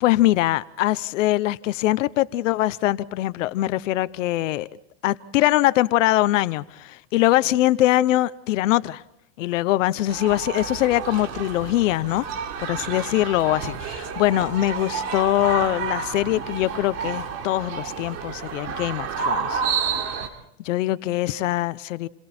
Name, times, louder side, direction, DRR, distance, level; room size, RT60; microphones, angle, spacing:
voice 1, 0.0-4.7 5.0-9.0 9.4-12.3 12.6-19.6 20.0-20.3 20.6-22.1, left 16 dB, 85° left, 0.9 m, -22 dB
sound 1, 10.1-20.3, right 6 dB, 45° right, 3.7 m, -30 dB
29.5 x 22.0 x 4.4 m
supercardioid pair, 140°, 37 cm